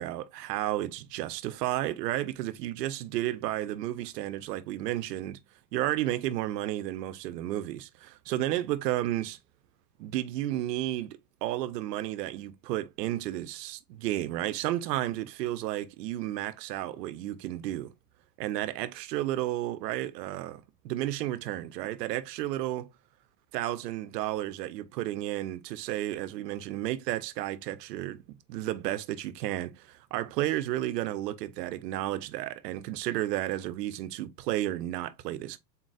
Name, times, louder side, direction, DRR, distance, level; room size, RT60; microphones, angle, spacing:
voice 1, 0.0-5.4 5.7-9.4 10.0-17.9 18.4-22.9 23.5-35.6, right 14 dB, 80° right, 0.6 m, -32 dB
4.1 x 3.9 x 2.3 m
hypercardioid pair, 110°, 48 cm